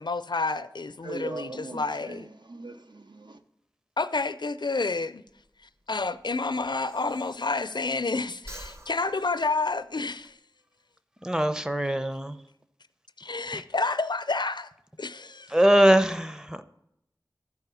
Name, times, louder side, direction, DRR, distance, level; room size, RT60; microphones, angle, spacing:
voice 1, 0.0-2.3 4.0-5.2 5.9-10.4 13.2-14.7 15.0-15.5, left 3 dB, 70° left, 0.4 m, -29 dB
voice 2, 1.0-3.4, right 3 dB, 75° right, 0.6 m, -40 dB
Breathing, 5.3-8.0 8.3-10.3, equal, 35° right, 0.9 m, -48 dB
voice 3, 11.2-12.4 13.5-13.6 15.5-16.6, right 1 dB, 10° right, 0.6 m, -22 dB
12.5 x 4.8 x 6.8 m
wide cardioid pair, 45°, 8 cm